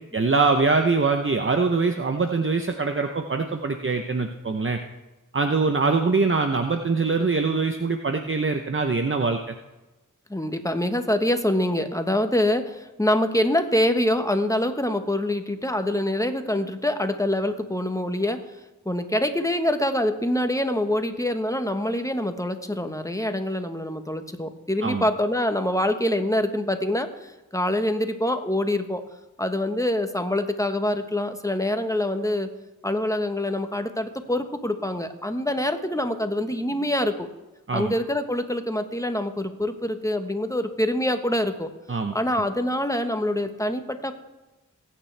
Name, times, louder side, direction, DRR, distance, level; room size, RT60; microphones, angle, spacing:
voice 1, 0.1-4.8 5.3-9.5 24.8-25.1 37.7-37.9 41.9-42.2, right 4 dB, 40° right, 5 dB, 0.8 m, -23 dB
voice 2, 10.3-18.4 18.8-29.0 29.4-32.5 32.8-37.3 37.7-41.7 42.1-44.1, left 1 dB, 10° left, 7 dB, 1.2 m, -25 dB
21.0 x 9.0 x 3.4 m, 1.1 s
wide cardioid pair, 45°, 32 cm